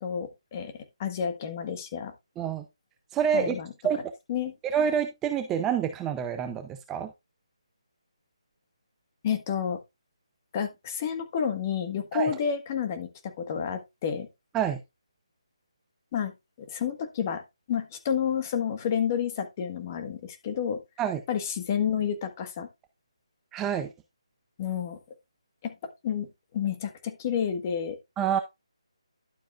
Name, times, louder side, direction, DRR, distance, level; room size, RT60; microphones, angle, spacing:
voice 1, 0.0-2.1 3.3-3.7 4.3-4.5 9.2-9.8 10.5-14.3 16.1-16.3 16.6-17.4 17.7-20.8 21.3-22.7 24.6-25.0 25.6-25.7 26.0-26.3 26.5-28.0, left 8 dB, 25° left, 1.5 m, -30 dB
voice 2, 3.1-3.6 3.8-4.0 4.6-7.1 12.1-12.3 14.5-14.8 21.0-21.2 23.5-23.9 28.2-28.4, right 8 dB, 10° right, 0.5 m, -27 dB
11.5 x 7.2 x 2.4 m
figure-of-eight pair, 165°, 3 cm